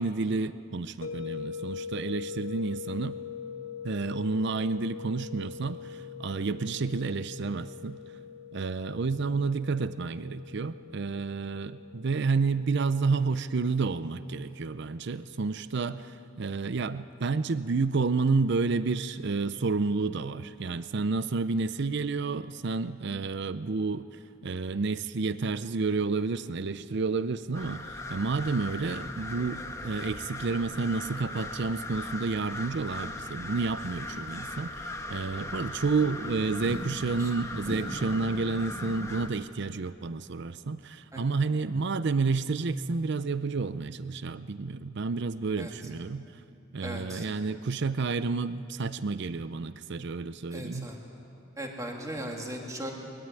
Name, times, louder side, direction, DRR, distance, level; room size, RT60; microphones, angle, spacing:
voice 1, 0.0-3.2 3.8-8.0 8.5-24.1 24.4-46.4 46.7-50.9, right 4 dB, 55° right, 14 dB, 0.5 m, -30 dB
sound 1, 1.0-15.9, left 8 dB, 85° left, 1.4 m, -43 dB
sound 2, 27.5-39.3, left 2 dB, 15° left, 1.2 m, -39 dB
voice 2, 46.8-47.3 50.5-51.0 51.6-52.9, right 1 dB, 15° right, 1 dB, 2.8 m, -37 dB
23.0 x 21.0 x 9.1 m, 2.6 s
head